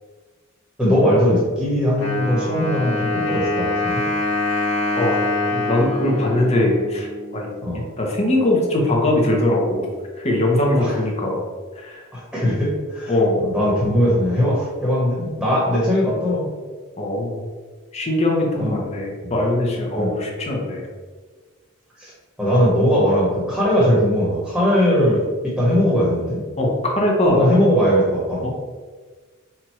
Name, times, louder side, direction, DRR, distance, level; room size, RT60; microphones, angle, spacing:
voice 1, 0.8-4.0 7.6-7.8 10.8-10.9 12.1-13.1 13.4-16.4 18.6-18.8 19.2-19.3 19.9-20.1 22.0-22.1 22.4-26.4 27.2-28.5, equal, ahead, -7 dB, 1.3 m, -19 dB
Wind instrument woodwind instrument, 2.0-7.6, left 2 dB, 65° left, 1.1 m, -25 dB
voice 2, 5.5-9.9 10.2-11.4 11.8-12.1 13.1-13.4 17.0-17.4 17.9-20.9 26.6-27.5 28.4-28.5, left 1 dB, 30° left, -1 dB, 0.9 m, -21 dB
4.5 x 2.5 x 4.4 m, 1.4 s
head